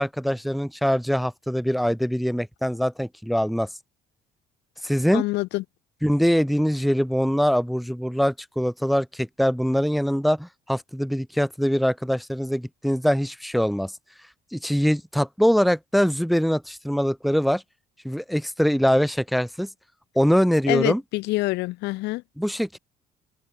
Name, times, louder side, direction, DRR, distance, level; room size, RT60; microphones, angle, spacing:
voice 1, 0.0-3.7 4.8-5.2 6.0-13.9 14.5-17.6 18.0-19.7 20.1-21.0 22.4-22.8, equal, ahead, 1.3 m, -23 dB
voice 2, 5.1-5.6 20.7-22.2, left 20 dB, 90° left, 1.8 m, -26 dB
cardioid pair, 110°, 17 cm